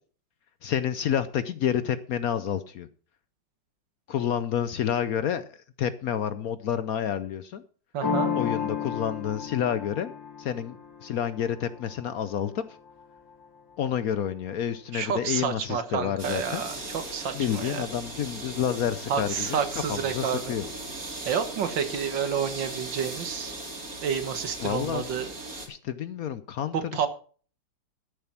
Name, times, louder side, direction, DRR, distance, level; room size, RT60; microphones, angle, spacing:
voice 1, 0.6-2.9 4.1-7.6 8.3-10.1 10.4-12.6 13.8-16.6 17.3-19.6 19.9-20.7 24.6-25.1 25.7-27.1, left 9 dB, 65° left, 13 dB, 0.9 m, -29 dB
voice 2, 7.9-8.3 14.9-16.8 17.1-17.8 19.1-20.5 21.3-23.5 24.0-25.3 26.7-27.1, right 7 dB, 80° right, 9 dB, 2.0 m, -29 dB
sound 1, 8.0-13.6, left 6 dB, 80° left, 3.2 m, -33 dB
sound 2, 16.2-25.7, right 2 dB, 50° right, 3.1 m, -38 dB
13.0 x 7.1 x 5.8 m, 0.41 s
omnidirectional pair, 2.0 m